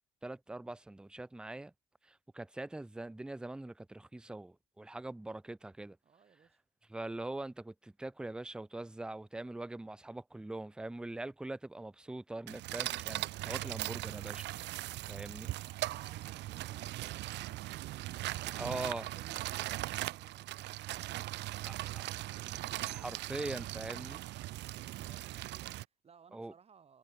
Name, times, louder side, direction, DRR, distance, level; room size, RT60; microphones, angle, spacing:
voice 1, 0.2-1.7 2.0-6.0 6.9-14.5 15.0-15.5 18.6-19.1 21.7-22.0 22.8-24.2 26.3-26.5, right 2 dB, 5° right, 0.6 m, -42 dB
voice 2, 6.0-6.6 15.6-17.8 18.4-22.5 24.9-27.0, right 6 dB, 30° right, 6.2 m, -62 dB
sound 1, 12.5-25.8, right 17 dB, 55° right, 1.1 m, -39 dB
cardioid pair, 125°, 21 cm